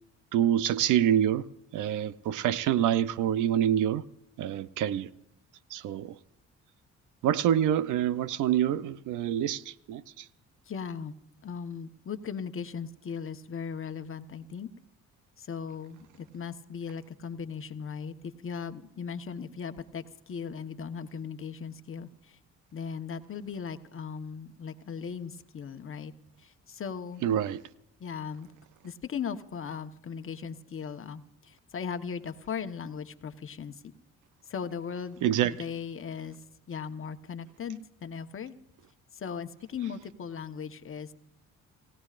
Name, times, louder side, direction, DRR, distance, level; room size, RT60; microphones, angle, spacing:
voice 1, 0.3-1.4 1.7-4.0 4.4-5.1 5.7-6.1 7.2-10.0 27.2-27.6 35.2-35.5, right 10 dB, 85° right, 0.7 m, -26 dB
voice 2, 10.7-11.2 11.4-14.7 15.4-22.4 22.7-26.1 26.4-27.2 28.0-28.5 28.8-33.9 34.5-35.2 35.5-36.4 36.7-38.5 39.1-41.1, left 6 dB, 45° left, 1.2 m, -38 dB
28.5 x 16.5 x 2.5 m
cardioid pair, 90°, 30 cm